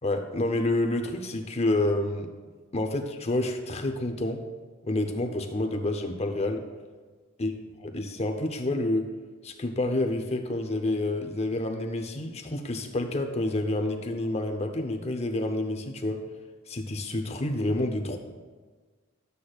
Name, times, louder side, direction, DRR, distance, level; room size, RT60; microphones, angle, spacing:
voice 1, 0.0-2.3 2.7-4.4 4.9-6.6 7.4-7.5 7.8-9.1 9.4-16.2 16.7-18.2, left 1 dB, 30° left, 5 dB, 0.7 m, -28 dB
11.5 x 8.2 x 2.4 m, 1.4 s
head